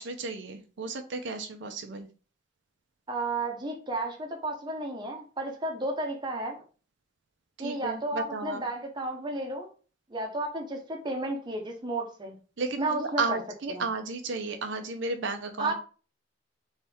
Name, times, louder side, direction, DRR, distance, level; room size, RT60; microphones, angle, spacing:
voice 1, 0.0-2.1 7.6-8.6 12.6-15.7, right 3 dB, 70° right, 6 dB, 0.6 m, -33 dB
voice 2, 3.1-6.6 7.6-9.7 10.1-12.4 12.8-13.4 13.7-13.8 15.6-15.7, right 2 dB, 25° right, 2 dB, 0.8 m, -32 dB
3.5 x 3.2 x 4.3 m, 0.37 s
head